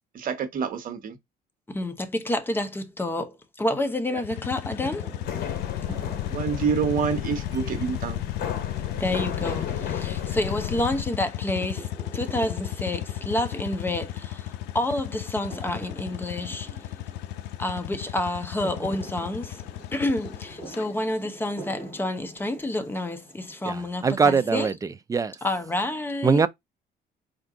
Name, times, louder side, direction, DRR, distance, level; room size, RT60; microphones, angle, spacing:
voice 1, 0.1-1.2 4.1-4.2 6.3-8.2, right 6 dB, 55° right, 1.1 m, -27 dB
voice 2, 1.7-5.1 8.9-16.7 17.6-19.6 19.9-24.7 25.4-26.4, left 1 dB, 10° left, 0.8 m, -29 dB
sound 1, 4.2-20.9, left 15 dB, 85° left, 0.4 m, -35 dB
sound 2, 4.7-24.3, right 1 dB, 35° left, 2.8 m, -45 dB
sound 3, 5.2-11.0, left 8 dB, 65° left, 0.9 m, -34 dB
voice 3, 23.7-25.3 26.2-26.5, right 5 dB, 20° right, 0.4 m, -23 dB
4.3 x 2.6 x 3.7 m
cardioid pair, 110°, 17 cm